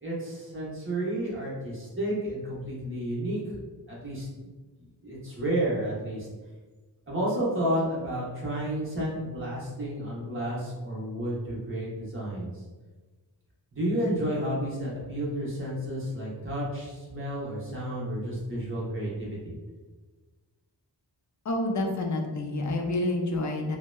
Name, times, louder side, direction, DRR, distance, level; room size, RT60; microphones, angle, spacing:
voice 1, 0.0-3.6 3.9-4.3 5.0-6.3 7.1-12.5 13.7-19.6, right 1 dB, 30° right, -6 dB, 0.9 m, -31 dB
voice 2, 21.4-23.8, left 2 dB, 40° left, 2 dB, 0.4 m, -28 dB
2.8 x 2.1 x 2.2 m, 1.3 s
wide cardioid pair, 70°, 45 cm